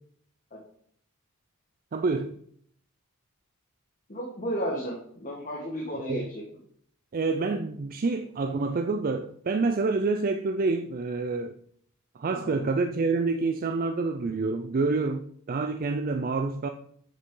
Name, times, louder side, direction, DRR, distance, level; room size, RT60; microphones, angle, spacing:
voice 1, 1.9-2.4 6.1-6.3 7.1-11.6 12.2-16.7, right 3 dB, 40° right, 0.4 m, -27 dB
voice 2, 4.1-6.4 12.3-12.6, equal, 35° left, 1.5 m, -33 dB
7.8 x 6.5 x 3.8 m
head